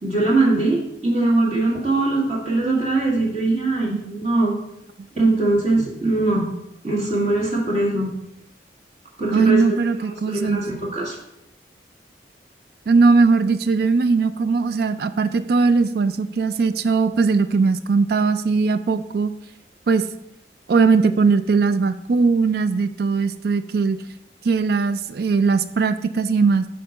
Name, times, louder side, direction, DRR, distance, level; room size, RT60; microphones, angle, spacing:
voice 1, 0.0-4.5 5.1-6.5 6.8-8.1 9.2-9.6 10.3-11.2, right 2 dB, 35° right, -4 dB, 1.6 m, -21 dB
voice 2, 9.3-10.6 12.9-19.3 19.9-20.1 20.7-24.0 24.4-26.7, right 4 dB, 55° right, 12 dB, 0.4 m, -19 dB
6.5 x 3.9 x 5.2 m, 0.81 s
head